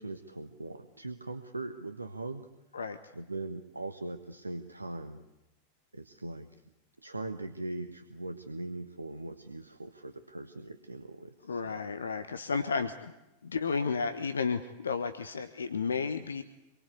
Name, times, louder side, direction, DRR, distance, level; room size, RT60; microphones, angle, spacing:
voice 1, 0.0-2.5 3.1-5.2 5.9-6.5 7.0-11.8, right 2 dB, 80° right, 9 dB, 1.2 m, -40 dB
voice 2, 11.5-13.1 13.4-16.4, left 5 dB, 70° left, 9 dB, 1.2 m, -32 dB
26.5 x 23.0 x 8.4 m, 0.96 s
figure-of-eight pair, 90°, 0 cm